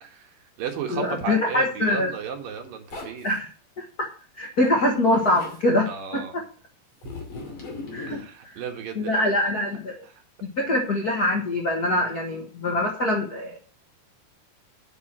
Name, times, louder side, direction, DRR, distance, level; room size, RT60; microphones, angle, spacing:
voice 1, 0.0-3.3 5.9-6.4 8.1-9.4, right 6 dB, 70° right, 4 dB, 3.2 m, -34 dB
voice 2, 0.9-2.1 3.2-3.5 3.8-4.1 4.4-6.4 7.9-8.5 8.9-10.0 10.4-13.6, left 1 dB, 70° left, 1 dB, 0.9 m, -24 dB
Zipper (clothing), 2.9-3.4 4.5-5.6 7.0-8.3, left 3 dB, 35° left, 3.1 m, -38 dB
8.3 x 6.1 x 7.4 m, 0.40 s
omnidirectional pair, 4.3 m